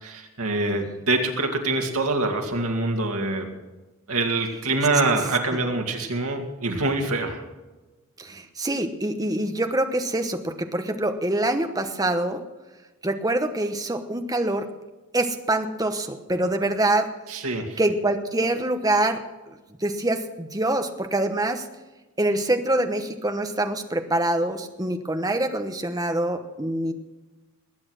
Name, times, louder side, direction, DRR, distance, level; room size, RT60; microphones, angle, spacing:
voice 1, 0.0-3.5 4.1-7.4 17.3-17.8, right 2 dB, 85° right, 3 dB, 2.2 m, -25 dB
voice 2, 8.2-12.4 13.0-14.7 15.1-17.1 17.8-21.7 22.2-26.9, right 1 dB, 15° right, 6 dB, 1.0 m, -25 dB
20.0 x 8.8 x 6.2 m, 1.2 s
head